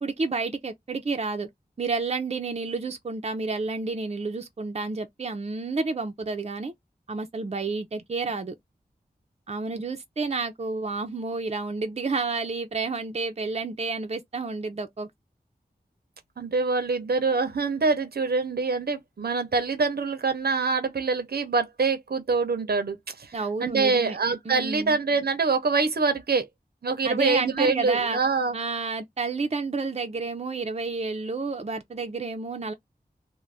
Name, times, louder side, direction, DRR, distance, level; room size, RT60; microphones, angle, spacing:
voice 1, 0.0-1.5 1.8-6.7 7.1-8.5 9.5-15.1 23.3-24.2 24.5-25.0 27.0-28.2 28.5-32.7, right 3 dB, 40° right, 0.5 m, -30 dB
voice 2, 16.4-26.5 26.8-28.6, right 4 dB, 90° right, 0.7 m, -25 dB
2.5 x 2.1 x 3.2 m
wide cardioid pair, 60°, 16 cm